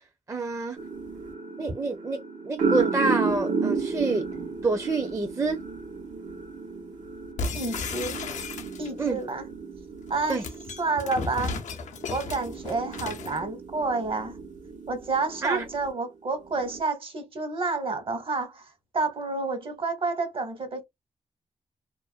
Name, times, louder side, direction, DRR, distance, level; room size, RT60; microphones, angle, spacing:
voice 1, 0.3-0.8 1.6-4.2 4.6-5.6 9.0-9.2 10.3-10.4 15.4-15.6, right 3 dB, 25° right, 0.5 m, -27 dB
sound 1, 0.8-15.9 16.5-16.8, right 4 dB, 90° right, 0.9 m, -33 dB
sound 2, 7.4-9.1 10.1-13.4, left 4 dB, 85° left, 0.5 m, -34 dB
voice 2, 7.5-8.2 8.8-9.5 10.1-10.4 10.8-11.6 12.1-14.4 14.9-20.8, right 3 dB, 45° right, 0.9 m, -29 dB
2.5 x 2.1 x 2.3 m
cardioid pair, 80°, 12 cm